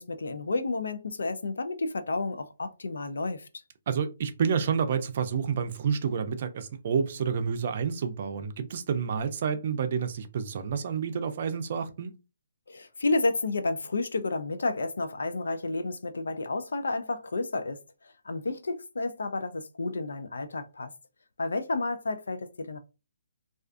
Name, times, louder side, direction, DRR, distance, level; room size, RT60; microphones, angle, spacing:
voice 1, 0.0-3.5 12.7-17.8 18.2-20.9 21.4-22.8, left 3 dB, 80° left, 0.4 m, -31 dB
voice 2, 3.9-12.1, right 6 dB, 50° right, 0.4 m, -29 dB
2.4 x 2.3 x 2.5 m
hypercardioid pair, 145°, 0 cm